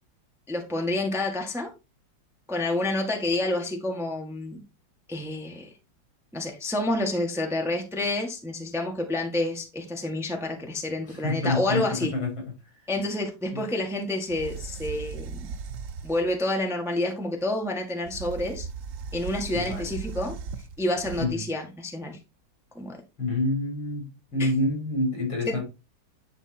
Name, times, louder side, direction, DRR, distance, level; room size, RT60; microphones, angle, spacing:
voice 1, 0.5-1.7 2.5-4.6 5.1-5.7 6.3-12.1 12.9-15.5 16.0-18.7 19.1-20.4 20.8-22.2 22.7-23.0 24.4-24.5 25.4-25.6, left 1 dB, ahead, 1.3 m, -29 dB
voice 2, 11.1-12.3 13.5-13.6 19.5-19.9 21.2-21.4 23.2-25.6, left 2 dB, 80° left, 4.6 m, -27 dB
sound 1, 14.0-14.1 14.3-16.3 18.0-21.3, right 5 dB, 70° right, 0.7 m, -37 dB
10.0 x 3.6 x 4.3 m
omnidirectional pair, 2.2 m